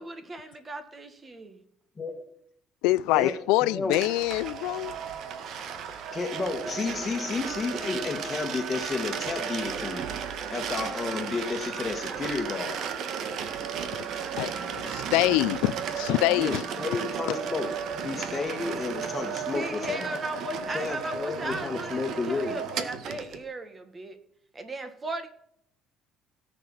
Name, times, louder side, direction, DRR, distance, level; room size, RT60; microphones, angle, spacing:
voice 1, 0.0-1.6 19.5-24.2 24.5-25.3, right 1 dB, 25° right, 1.9 m, -37 dB
voice 2, 2.8-5.0 14.4-16.6, left 18 dB, 90° left, 0.6 m, -25 dB
voice 3, 3.6-4.0 6.1-10.0 10.5-12.8 16.3-17.7 18.0-20.2 20.7-22.6, left 4 dB, 20° left, 1.9 m, -32 dB
sound 1, 3.9-23.4, right 7 dB, 60° right, 1.7 m, -34 dB
17.5 x 7.0 x 5.7 m
cardioid pair, 125°, 0 cm